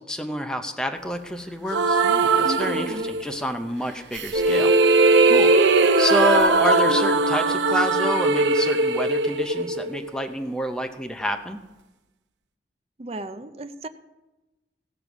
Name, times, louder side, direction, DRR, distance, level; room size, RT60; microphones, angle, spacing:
voice 1, 0.0-4.7 5.2-5.6 6.0-11.6, equal, 5° left, 5 dB, 0.7 m, -28 dB
sound 1, 1.7-3.4 4.1-10.2, right 3 dB, 85° right, 0.7 m, -19 dB
voice 2, 2.4-3.1 13.0-13.9, right 1 dB, 35° right, 11 dB, 0.5 m, -34 dB
17.0 x 6.8 x 6.1 m, 1.1 s
head